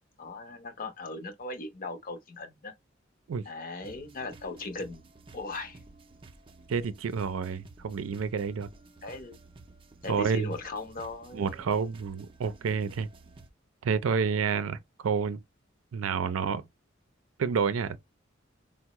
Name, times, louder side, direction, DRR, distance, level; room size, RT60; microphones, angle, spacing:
voice 1, 0.2-2.7 3.5-5.0 5.3-5.8 9.0-9.4 10.0-11.5, left 2 dB, 45° left, 0.7 m, -38 dB
sound 1, 3.8-13.5, right 3 dB, 25° right, 0.4 m, -53 dB
voice 2, 6.7-8.7 10.1-10.5 11.3-13.1 13.8-15.4 15.9-16.6 17.4-18.0, right 6 dB, 90° right, 0.4 m, -29 dB
4.4 x 2.0 x 2.9 m
head